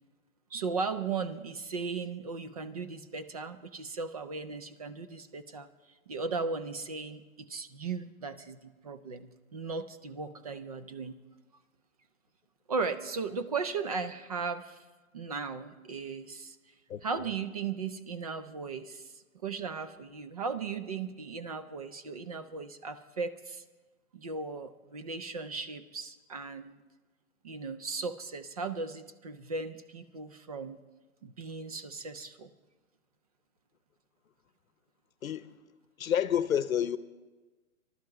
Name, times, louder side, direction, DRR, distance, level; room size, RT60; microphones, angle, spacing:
voice 1, 0.5-5.7 6.1-11.1 12.7-14.8 15.1-16.6 17.0-23.6 24.1-26.8 27.4-30.8 31.2-32.5, right 4 dB, 30° right, 0.5 m, -37 dB
voice 2, 36.0-37.0, left 9 dB, 75° left, 0.8 m, -28 dB
22.5 x 12.0 x 4.7 m
hypercardioid pair, 160°, 41 cm